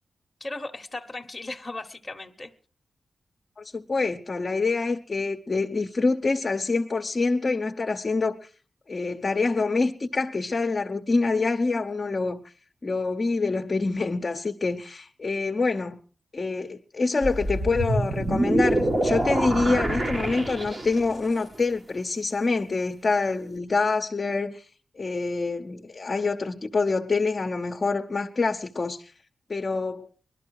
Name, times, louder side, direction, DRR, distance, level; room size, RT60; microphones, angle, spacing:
voice 1, 0.4-2.5, left 2 dB, 15° left, 1.1 m, -36 dB
voice 2, 3.6-8.4 8.9-12.4 12.8-16.0 16.3-24.6 25.0-29.1 29.5-30.1, left 3 dB, 35° left, 0.8 m, -26 dB
sound 1, 17.2-21.2, right 1 dB, 35° right, 1.5 m, -26 dB
20.5 x 12.5 x 4.7 m
wide cardioid pair, 125°, 0 cm